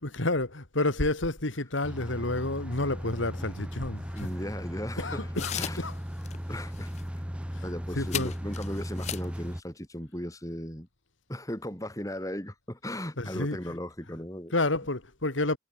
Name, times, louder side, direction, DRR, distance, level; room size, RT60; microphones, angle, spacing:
voice 1, 0.0-4.3 5.0-5.9 7.5-7.6 7.9-8.3 13.2-13.7 14.5-15.6, left 2 dB, 85° left, 2.6 m, -30 dB
sound 1, 1.8-9.6, equal, 5° right, 1.4 m, -37 dB
voice 2, 4.1-5.3 5.5-5.8 6.5-6.9 7.6-10.9 11.3-14.5, left 1 dB, 15° left, 3.9 m, -37 dB
sound 2, 4.2-4.3 5.4-5.9 6.2-6.4 6.7-7.0 8.1-9.4, left 10 dB, 35° left, 0.4 m, -36 dB
head